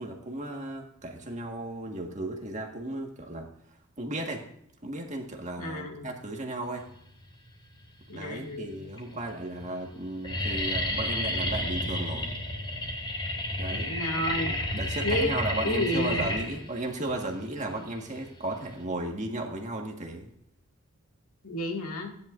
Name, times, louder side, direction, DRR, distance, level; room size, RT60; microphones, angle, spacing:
voice 1, 0.0-3.5 4.0-4.4 4.8-6.8 8.1-12.3 13.6-13.9 14.3-20.3, right 1 dB, 35° right, 2 dB, 1.7 m, -35 dB
voice 2, 5.6-6.1 8.1-8.8 13.7-14.5 15.0-15.3 15.6-16.3 21.4-22.1, left 1 dB, 90° left, 1 dB, 2.3 m, -31 dB
sound 1, 7.6-8.2 8.9-9.0 9.3-9.6 9.9-18.8, left 1 dB, 20° left, 3.2 m, -31 dB
16.0 x 10.5 x 2.6 m, 0.73 s
head